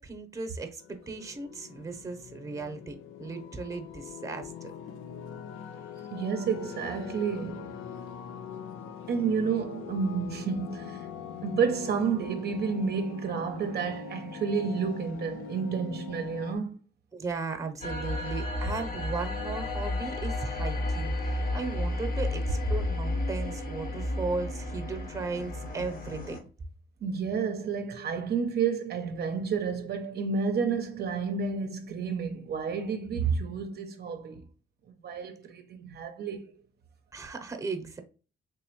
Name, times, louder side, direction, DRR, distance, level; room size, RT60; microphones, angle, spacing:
voice 1, 0.0-4.7 17.1-26.5 37.1-38.0, right 4 dB, 15° right, 0.8 m, -36 dB
sound 1, 0.8-16.6, left 7 dB, 85° left, 0.5 m, -42 dB
voice 2, 6.1-7.8 9.1-11.1 11.4-16.8 27.0-34.5 35.0-36.5, right 5 dB, 55° right, 0.5 m, -30 dB
sound 2, 17.8-26.4, left 1 dB, 50° left, 0.9 m, -32 dB
3.5 x 2.9 x 3.0 m
cardioid pair, 90°, 20 cm